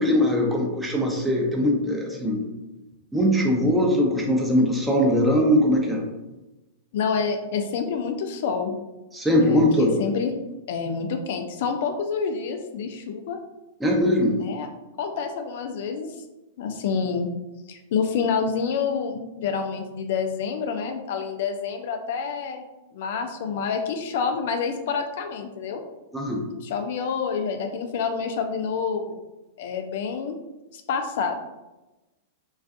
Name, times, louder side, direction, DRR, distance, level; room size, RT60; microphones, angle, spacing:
voice 1, 0.0-2.4 3.1-6.0 9.1-10.0 13.8-14.4 26.1-26.4, equal, 5° right, 0 dB, 0.5 m, -21 dB
voice 2, 6.9-8.8 9.4-10.3 10.7-13.4 14.4-14.7 15.0-16.1 16.6-17.3 17.7-22.6 22.9-25.8 26.6-29.2 29.6-30.4 30.7-31.4, left 6 dB, 65° left, 5 dB, 0.3 m, -28 dB
2.4 x 2.3 x 2.5 m, 1.0 s
hypercardioid pair, 120°, 0 cm